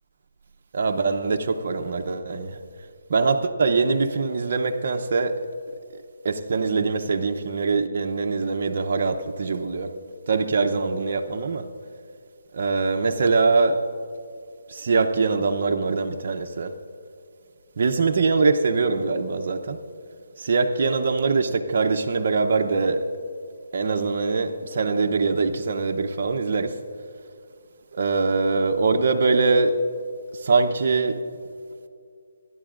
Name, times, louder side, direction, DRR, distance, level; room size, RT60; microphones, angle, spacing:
voice 1, 0.7-2.6 3.1-5.4 6.2-9.9 10.3-11.7 12.5-13.8 14.7-16.7 17.8-19.8 20.4-23.1 23.7-26.8 27.9-29.8 30.3-31.2, right 4 dB, 55° right, 0.7 m, -23 dB
26.5 x 11.0 x 2.5 m
hypercardioid pair, 155°, 0 cm